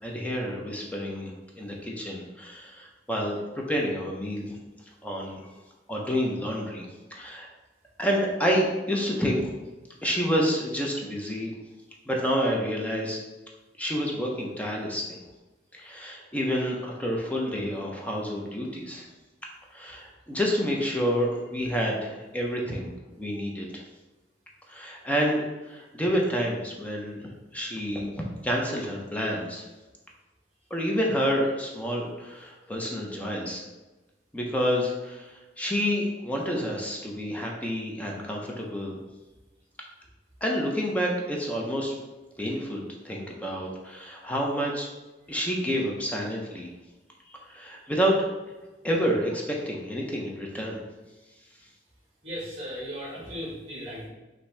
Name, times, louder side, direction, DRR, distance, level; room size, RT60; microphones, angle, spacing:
voice 1, 0.0-1.3 1.6-3.4 3.7-4.6 5.0-5.5 5.9-7.5 8.0-9.5 10.0-11.5 12.1-13.2 13.8-15.2 15.7-19.1 19.7-22.9 23.2-23.8 24.7-28.1 28.4-29.7 30.7-33.6 34.3-39.0 40.4-41.9 42.4-44.9 45.3-46.7 47.3-48.2 48.8-50.8, equal, 10° left, -1 dB, 0.6 m, -29 dB
voice 2, 52.2-54.1, equal, 35° right, -7 dB, 1.4 m, -36 dB
5.7 x 2.7 x 3.3 m, 1.1 s
head